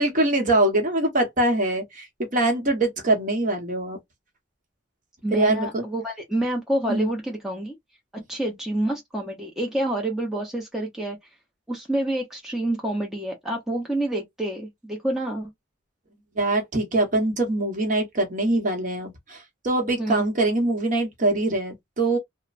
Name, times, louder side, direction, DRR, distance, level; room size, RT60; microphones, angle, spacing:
voice 1, 0.0-4.0 5.3-5.8 6.9-7.1 16.3-22.2, right 2 dB, 40° right, 0.9 m, -23 dB
voice 2, 5.2-7.7 8.3-11.2 11.7-15.5 20.0-20.2, right 1 dB, ahead, 0.6 m, -28 dB
3.1 x 2.1 x 2.4 m
head